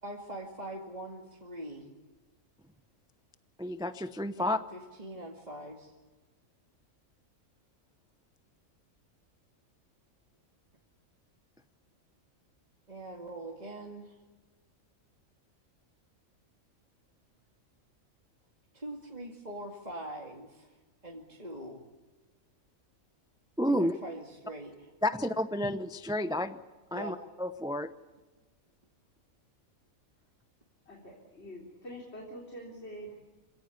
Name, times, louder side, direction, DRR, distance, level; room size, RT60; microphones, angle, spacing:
voice 1, 0.0-1.9 4.4-5.9 12.9-14.1 18.7-20.7 21.0-21.8 23.7-24.9 26.9-27.2, right 1 dB, 30° right, -1 dB, 2.5 m, -43 dB
voice 2, 3.6-4.6 23.6-23.9 25.0-26.6 26.9-27.9, left 1 dB, 5° right, 11 dB, 0.6 m, -30 dB
voice 3, 30.9-33.1, equal, 50° left, -1 dB, 4.1 m, -45 dB
26.5 x 17.5 x 8.4 m, 1.2 s
omnidirectional pair, 1.4 m